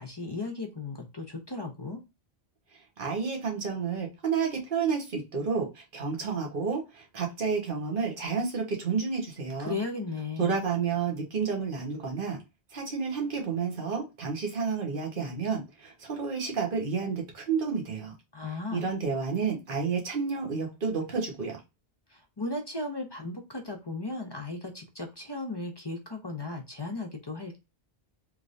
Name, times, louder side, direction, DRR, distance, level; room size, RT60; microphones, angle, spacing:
voice 1, 0.0-2.0 9.6-10.6 18.3-18.9 22.1-27.6, left 3 dB, 30° left, 0.6 m, -36 dB
voice 2, 3.0-9.8 10.4-12.4 12.7-18.1 18.7-21.6, right 5 dB, 55° right, 1.3 m, -30 dB
3.5 x 3.2 x 2.5 m
omnidirectional pair, 1.1 m